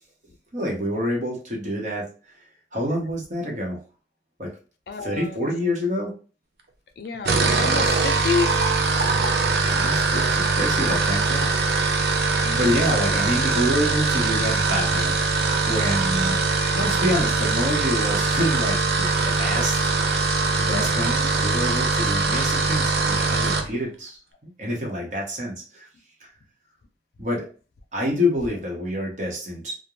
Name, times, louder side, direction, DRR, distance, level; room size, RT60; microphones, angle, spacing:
voice 1, 0.5-2.1 2.7-3.8 4.4-4.5 5.0-6.1 9.7-12.0 12.5-15.2 15.6-16.4 16.7-19.8 20.0-25.9 26.2-26.3 27.2-27.5 27.9-29.7, equal, 45° right, -2 dB, 0.8 m, -27 dB
voice 2, 4.9-5.4 7.0-8.5 12.3-12.6 20.7-21.2, left 5 dB, 65° left, 7 dB, 0.4 m, -29 dB
sound 1, 7.1-23.7, right 3 dB, 65° right, 0.4 m, -22 dB
2.4 x 2.1 x 3.0 m, 0.38 s
head